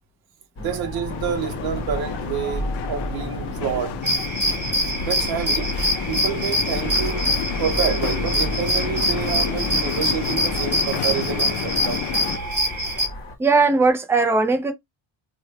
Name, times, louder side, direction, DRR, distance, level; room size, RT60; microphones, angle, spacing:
sound 1, 0.6-13.4, equal, 25° left, 1.2 m, -32 dB
voice 1, 0.6-4.0 5.0-5.8 6.0-7.3 7.6-12.1, right 8 dB, 55° right, 0.8 m, -28 dB
sound 2, 1.1-12.4, left 12 dB, 60° left, 0.5 m, -31 dB
sound 3, 4.0-13.1, equal, 20° right, 1.4 m, -25 dB
voice 2, 13.4-14.7, right 3 dB, 5° right, 0.4 m, -18 dB
3.2 x 2.4 x 3.2 m
cardioid pair, 150°, 46 cm